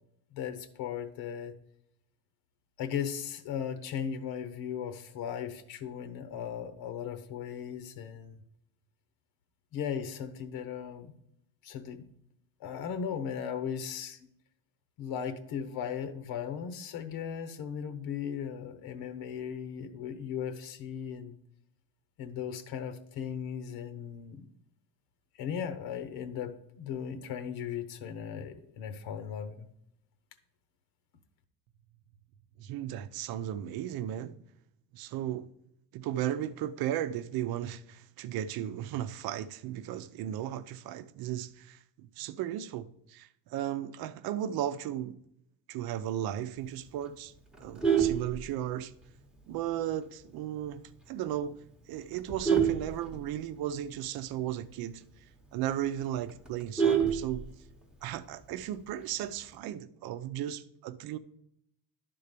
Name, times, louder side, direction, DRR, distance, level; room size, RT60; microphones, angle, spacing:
voice 1, 0.3-1.5 2.8-8.4 9.7-11.1 11.6-12.0 12.6-14.3 15.0-21.4 22.2-24.5 25.4-29.7, left 8 dB, 75° left, 1.0 m, -37 dB
voice 2, 32.6-34.4 34.9-35.5 35.9-41.8 42.2-45.2 45.7-47.3 47.6-48.9 49.5-51.6 51.9-55.0 55.5-57.5 58.0-61.2, right 11 dB, 70° right, 0.7 m, -35 dB
Vehicle horn car horn honking, 47.5-49.0 49.5-49.7 50.0-50.1 50.6-50.7 51.0-51.3 51.9-53.7 54.1-54.2 54.5-54.6 55.0-55.1 55.4-55.5 55.8-57.8 59.0-59.4, right 7 dB, ahead, 0.9 m, -28 dB
11.5 x 3.9 x 6.7 m
cardioid pair, 175°, 37 cm